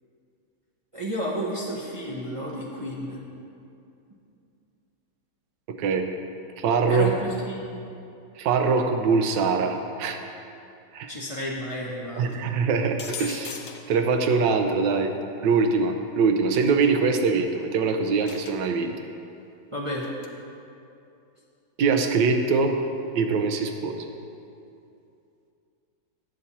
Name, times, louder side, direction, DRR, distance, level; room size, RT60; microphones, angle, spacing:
voice 1, 0.9-3.2 6.9-7.6 11.1-12.4 19.7-20.1, equal, 40° right, -4 dB, 0.4 m, -31 dB
voice 2, 6.6-7.1 8.4-10.2 10.9-11.1 12.2-13.6 13.9-15.1 15.4-18.9 21.8-22.7 23.1-24.1, right 4 dB, 80° right, 5 dB, 1.4 m, -23 dB
sound 1, 13.0-14.0 16.6-16.9 18.3-18.7 19.9-20.3, left 6 dB, 85° left, 0.6 m, -39 dB
9.3 x 4.1 x 7.2 m, 2.6 s
omnidirectional pair, 1.9 m